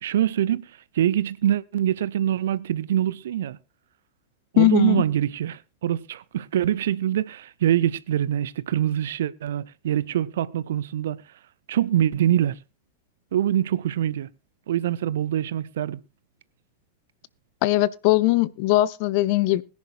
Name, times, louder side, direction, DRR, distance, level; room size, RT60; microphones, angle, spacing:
voice 1, 0.0-3.6 4.5-11.2 11.7-12.6 13.3-14.3 14.7-16.0, right 11 dB, 60° right, 0.6 m, -24 dB
voice 2, 4.6-5.0 17.6-19.6, left 18 dB, 45° left, 0.6 m, -20 dB
21.0 x 10.5 x 2.4 m
figure-of-eight pair, 90°, 0 cm